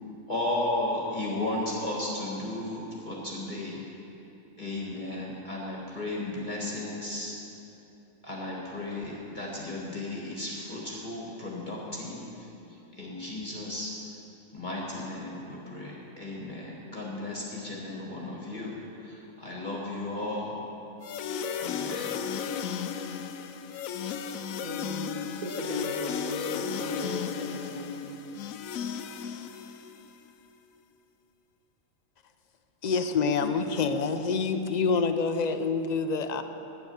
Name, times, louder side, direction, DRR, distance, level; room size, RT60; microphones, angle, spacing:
voice 1, 0.3-3.8 4.6-7.3 8.2-13.9 14.5-20.6 21.5-22.2 33.4-33.6, left 2 dB, 35° left, -4 dB, 1.6 m, -35 dB
sound 1, 21.0-30.1, left 7 dB, 85° left, 1.0 m, -34 dB
voice 2, 24.6-28.1, left 1 dB, 30° right, -3 dB, 1.8 m, -37 dB
voice 3, 32.8-36.4, left 5 dB, 55° left, 8 dB, 0.4 m, -27 dB
10.5 x 9.5 x 6.9 m, 3.0 s
omnidirectional pair, 1.4 m